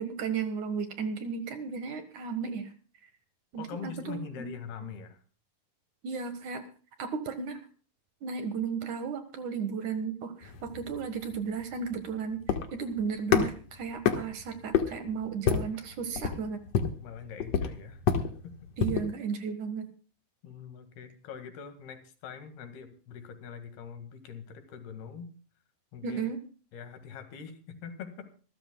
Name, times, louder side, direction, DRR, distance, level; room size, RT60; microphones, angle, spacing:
voice 1, 0.0-2.7 3.5-4.5 4.8-4.9 6.0-6.6 7.0-7.6 8.2-12.4 12.7-16.6 18.8-19.9 26.0-26.4, right 6 dB, 60° right, 9 dB, 2.5 m, -34 dB
voice 2, 3.6-5.2 17.0-18.0 18.4-18.6 18.8-18.9 20.4-25.3 25.9-26.2 26.7-28.3, left 6 dB, 85° left, 8 dB, 3.9 m, -43 dB
sound 1, 10.4-19.1, left 7 dB, 55° left, 2.0 m, -30 dB
26.0 x 13.5 x 2.2 m, 0.39 s
omnidirectional pair, 4.4 m